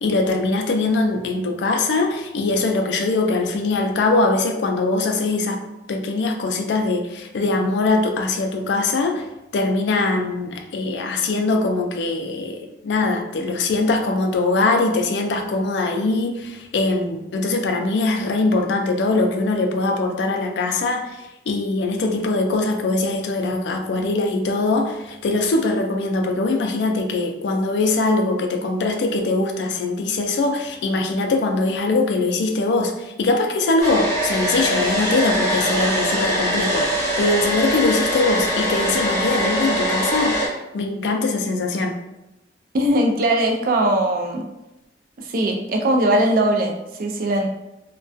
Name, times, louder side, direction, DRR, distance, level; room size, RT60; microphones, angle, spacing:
voice 1, 0.0-5.6 5.9-9.3 9.5-36.9 37.2-42.0, left 3 dB, 75° left, 4 dB, 0.3 m, -22 dB
Domestic sounds home sounds, 33.8-40.5, equal, 15° left, 0.7 m, -22 dB
voice 2, 42.7-44.4 45.2-47.5, right 1 dB, 50° right, 2 dB, 0.4 m, -20 dB
2.3 x 2.2 x 2.5 m, 0.95 s
head